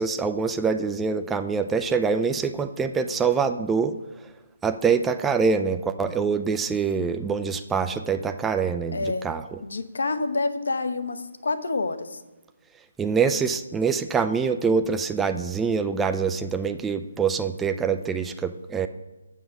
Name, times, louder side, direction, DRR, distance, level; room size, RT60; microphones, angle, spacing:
voice 1, 0.0-4.0 4.6-9.4 13.0-18.9, right 5 dB, 10° right, 8 dB, 0.3 m, -25 dB
voice 2, 8.9-9.3 9.6-12.2, left 3 dB, 65° left, 9 dB, 0.9 m, -28 dB
7.4 x 6.1 x 5.8 m, 1.1 s
figure-of-eight pair, 150°, 0 cm